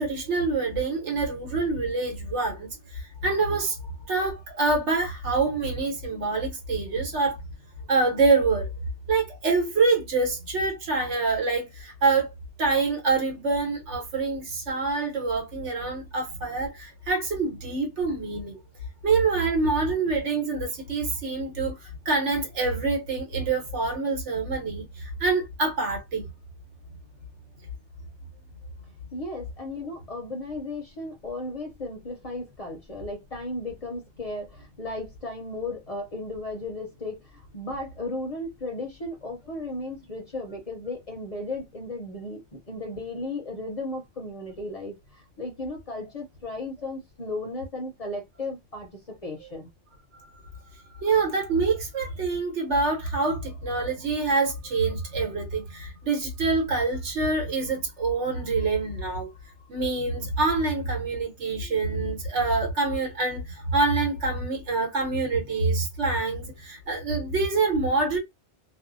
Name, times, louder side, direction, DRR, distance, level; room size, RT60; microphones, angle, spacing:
voice 1, 0.0-3.8 4.1-7.4 7.9-8.7 9.1-12.3 12.6-18.6 19.0-26.3 51.0-59.3 59.7-68.2, right 3 dB, 90° right, 1.3 m, -26 dB
voice 2, 29.1-49.7, left 2 dB, 45° left, 0.5 m, -35 dB
2.6 x 2.0 x 2.5 m
omnidirectional pair, 1.2 m